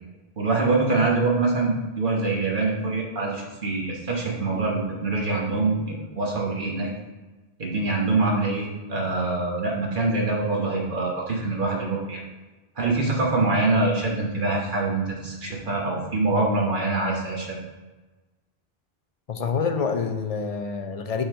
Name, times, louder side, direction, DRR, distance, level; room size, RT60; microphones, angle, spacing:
voice 1, 0.4-6.9 7.6-12.2 12.8-17.5, right 3 dB, 55° right, -1 dB, 1.3 m, -24 dB
voice 2, 19.3-21.2, left 5 dB, 50° left, 6 dB, 0.5 m, -27 dB
5.5 x 5.4 x 3.6 m, 1.2 s
omnidirectional pair, 1.0 m